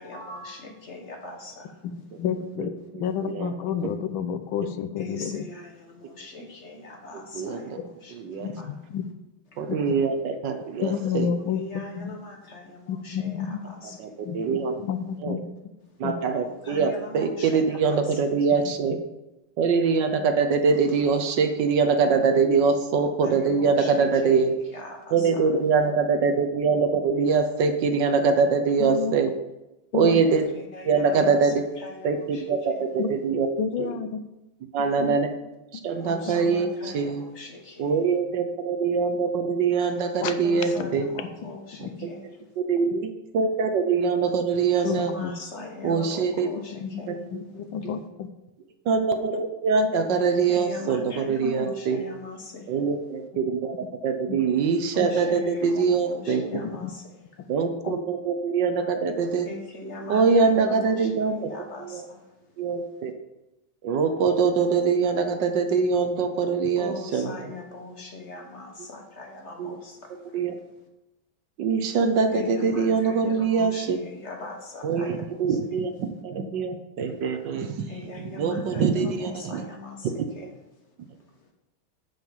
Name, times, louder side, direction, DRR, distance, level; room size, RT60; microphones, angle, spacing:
voice 1, 0.0-1.7 5.0-8.7 11.3-14.2 16.4-18.0 23.2-23.9 24.2-24.3 24.7-25.1 30.1-31.4 31.8-32.4 32.7-32.8 36.0-37.9 40.4-42.3 44.9-47.2 50.5-52.7 54.9-57.2 59.5-62.2 66.8-70.0 72.3-75.1 77.9-80.1, left 2 dB, 35° left, 1 dB, 1.7 m, -40 dB
voice 2, 1.8-5.4 7.8-7.9 8.4-9.0 10.8-12.2 12.9-13.6 14.2-15.5 16.0-16.1 28.8-29.2 29.9-30.2 33.0-33.1 33.6-34.2 35.0-35.2 40.2-40.3 40.7-40.9 41.4-41.5 41.8-42.1 44.8-45.3 46.7-48.3 54.3-54.4 56.6-56.9 57.8-58.0, left 7 dB, 85° left, 10 dB, 1.6 m, -30 dB
voice 3, 2.6-3.5 7.1-7.8 8.1-8.5 9.6-11.3 14.0-14.7 15.2-15.4 16.0-19.0 19.6-24.5 25.1-29.3 29.9-30.5 30.8-33.5 33.8-33.9 34.7-35.3 35.7-37.2 37.8-41.1 41.8-42.1 42.6-45.1 45.8-46.5 47.1-47.5 47.8-48.0 48.8-52.0 52.7-53.7 54.0-56.6 57.5-59.5 60.1-61.5 61.8-62.0 62.6-63.1 63.8-67.5 69.6-69.8 70.3-70.5 71.6-74.0 74.8-79.7 80.2-80.5, right 5 dB, 65° right, 7 dB, 1.5 m, -24 dB
10.5 x 5.6 x 7.3 m, 0.96 s
omnidirectional pair, 2.2 m